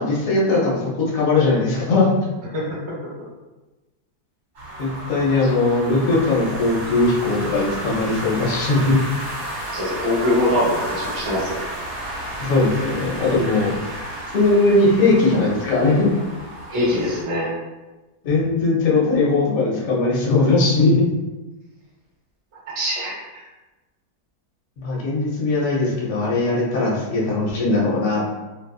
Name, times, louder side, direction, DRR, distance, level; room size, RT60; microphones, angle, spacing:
voice 1, 0.0-2.1 4.8-9.0 12.4-13.7 14.3-16.1 18.2-21.0 24.8-28.2, left 3 dB, 60° left, -5 dB, 1.0 m, -19 dB
voice 2, 2.5-2.9 9.7-11.6 16.7-17.5 22.8-23.1, left 1 dB, 45° right, -6 dB, 0.4 m, -23 dB
sound 1, 4.5-17.2, right 1 dB, 60° right, 1.4 m, -32 dB
2.8 x 2.4 x 2.2 m, 1.1 s
omnidirectional pair, 1.8 m